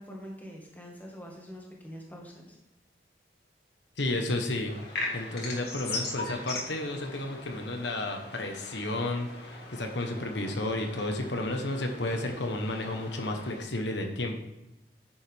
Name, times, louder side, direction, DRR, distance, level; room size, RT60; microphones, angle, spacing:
voice 1, 0.0-2.6, equal, 10° left, -2 dB, 1.9 m, -44 dB
voice 2, 4.0-4.7 5.1-14.4, left 2 dB, 80° left, 4 dB, 1.2 m, -32 dB
sound 1, 4.6-13.6, left 2 dB, 60° left, 2.2 m, -40 dB
10.0 x 7.4 x 3.6 m, 0.94 s
head